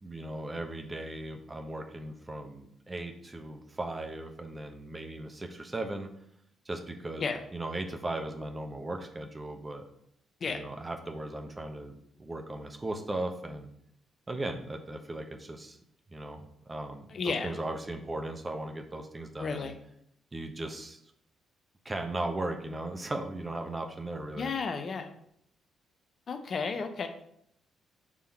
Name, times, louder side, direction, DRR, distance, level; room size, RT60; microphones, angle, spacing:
voice 1, 0.0-6.1 6.6-9.8 10.5-13.7 14.3-15.8 16.1-19.7 20.3-21.0 21.8-24.5, right 2 dB, 25° right, 5 dB, 0.9 m, -37 dB
voice 2, 17.1-17.5 19.4-19.7 24.3-25.1 26.3-27.1, left 5 dB, 50° left, 6 dB, 0.6 m, -33 dB
6.1 x 3.6 x 4.3 m, 0.72 s
figure-of-eight pair, 40°, 0 cm